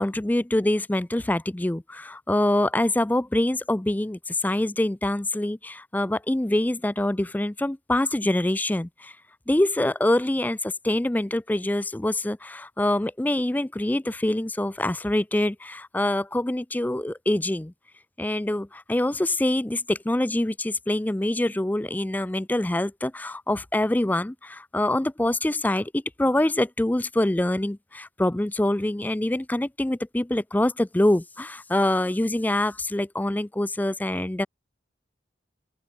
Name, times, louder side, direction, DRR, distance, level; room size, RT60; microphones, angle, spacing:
voice 1, 0.0-9.1 9.5-17.7 18.2-34.5, left 1 dB, 10° left, 0.4 m, -25 dB
open air
head